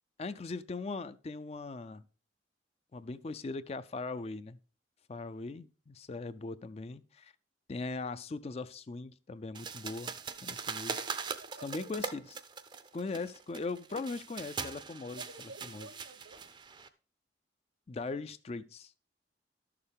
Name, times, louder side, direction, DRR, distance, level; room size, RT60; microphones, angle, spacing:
voice 1, 0.2-2.0 2.9-4.6 5.1-7.3 7.7-10.1 10.4-11.0 11.6-12.4 12.9-15.9 17.9-18.9, left 3 dB, 35° left, 0.4 m, -40 dB
sound 1, 9.5-16.9, right 5 dB, 25° right, 0.5 m, -41 dB
voice 2, 10.9-11.9 15.2-16.4, right 2 dB, 75° right, 1.1 m, -51 dB
12.5 x 6.7 x 3.5 m
head